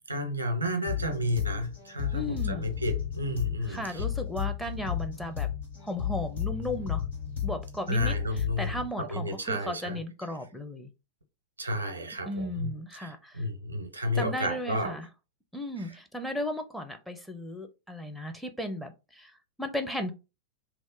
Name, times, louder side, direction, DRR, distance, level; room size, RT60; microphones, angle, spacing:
voice 1, 0.1-4.0 7.9-10.0 11.6-15.0 15.8-15.9, left 1 dB, 80° right, 0.6 m, -32 dB
sound 1, 0.9-8.9, left 10 dB, 75° left, 1.8 m, -33 dB
voice 2, 2.1-2.7 3.6-5.5 5.8-7.0 7.4-10.9 12.3-13.4 14.1-15.1 15.5-19.3 19.6-20.1, left 1 dB, ahead, 0.5 m, -35 dB
2.9 x 2.1 x 3.7 m
figure-of-eight pair, 90°, 0 cm